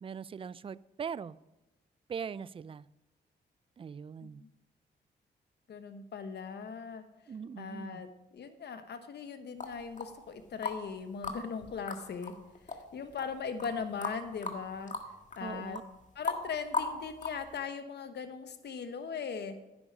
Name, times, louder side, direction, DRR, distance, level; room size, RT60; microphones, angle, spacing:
voice 1, 0.0-1.4 2.1-2.9 3.8-4.4 7.3-8.0 15.4-15.8, right 6 dB, 30° right, 19 dB, 0.3 m, -41 dB
voice 2, 4.2-4.5 5.7-7.0 7.6-12.3 12.9-14.9 15.4-15.8 16.1-19.5, left 6 dB, 65° left, 9 dB, 1.2 m, -39 dB
sound 1, 9.6-10.9 11.2-17.5, left 4 dB, 40° left, 1.7 m, -37 dB
10.0 x 8.5 x 5.2 m, 1.0 s
cardioid pair, 75°, 19 cm